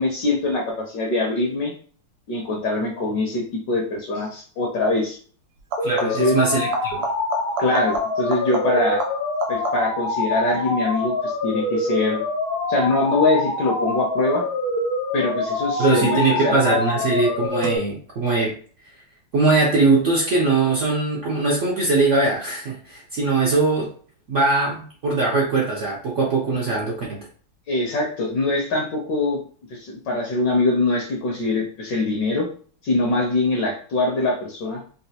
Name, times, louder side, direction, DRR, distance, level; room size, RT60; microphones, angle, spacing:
voice 1, 0.0-1.7 2.3-5.2 6.0-6.4 7.6-9.0 9.5-12.2 12.7-14.4 15.1-16.5 27.7-29.4 29.7-32.5 32.8-34.8, left 2 dB, 65° left, 0 dB, 1.2 m, -23 dB
sound 1, 4.1-4.4 5.6-6.4 6.7-10.1 15.5-16.1 17.6-17.7, right 3 dB, 65° right, 0.9 m, -32 dB
sound 2, 5.8-17.8, left 2 dB, 90° left, 1.7 m, -25 dB
voice 2, 5.8-7.1 15.8-18.6 19.3-23.9 24.3-27.3, right 3 dB, 85° right, -4 dB, 0.6 m, -21 dB
4.1 x 2.2 x 2.7 m, 0.44 s
omnidirectional pair, 2.2 m